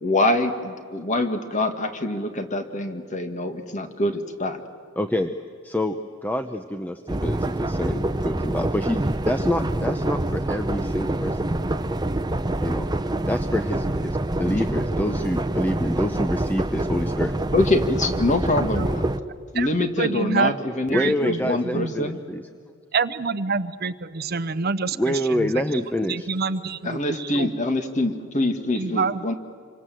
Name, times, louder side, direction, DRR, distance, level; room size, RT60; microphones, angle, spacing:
voice 1, 0.0-4.6 14.5-14.6 17.5-19.0 19.5-22.2 26.8-29.3, left 2 dB, 40° left, 7 dB, 2.0 m, -25 dB
voice 2, 5.0-5.3 5.6-5.9 6.2-11.5 12.6-12.9 13.3-17.3 20.9-22.4 25.0-26.3, left 1 dB, 10° left, 8 dB, 0.7 m, -27 dB
sound 1, 7.1-19.2, right 1 dB, 20° right, 0.8 m, -26 dB
voice 3, 19.5-20.6 20.9-21.9 22.9-25.5 26.1-27.5 28.7-29.2, right 4 dB, 50° right, 14 dB, 0.8 m, -27 dB
27.5 x 25.0 x 7.7 m, 2.2 s
head